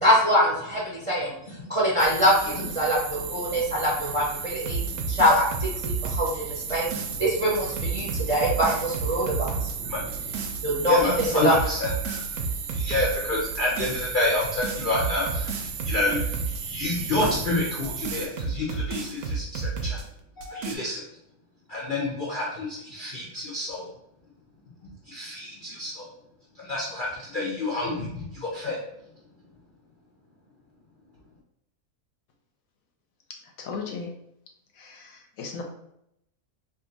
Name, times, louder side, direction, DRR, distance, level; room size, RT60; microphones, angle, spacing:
voice 1, 0.0-1.3 1.7-4.8 5.1-9.9 10.6-11.0 11.4-11.5, equal, 30° right, -5 dB, 0.6 m, -24 dB
sound 1, 2.0-18.3, right 6 dB, 90° right, 1.1 m, -35 dB
sound 2, 4.6-7.2 7.5-9.8 10.1-10.6 11.0-13.2 13.5-14.0 14.4-16.6 17.0-20.0 20.4-20.7, right 4 dB, 70° right, 0.8 m, -32 dB
voice 2, 9.8-10.2 10.5-12.2 12.7-20.0 20.4-21.0 21.7-23.9 25.1-26.1 26.6-28.8, left 2 dB, 50° left, -4 dB, 0.6 m, -29 dB
voice 3, 33.6-34.1 34.8-35.6, left 5 dB, 70° left, 2 dB, 1.0 m, -36 dB
2.7 x 2.5 x 3.9 m, 0.77 s
omnidirectional pair, 1.6 m